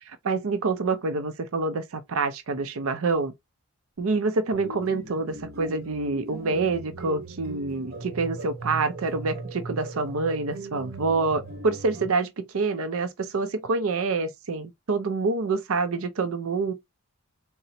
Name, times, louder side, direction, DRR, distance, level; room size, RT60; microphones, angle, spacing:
voice 1, 0.0-3.3 4.0-16.7, right 3 dB, 80° right, 0.6 m, -27 dB
sound 1, 4.5-12.1, right 2 dB, 45° right, 1.1 m, -39 dB
3.9 x 2.1 x 4.1 m
head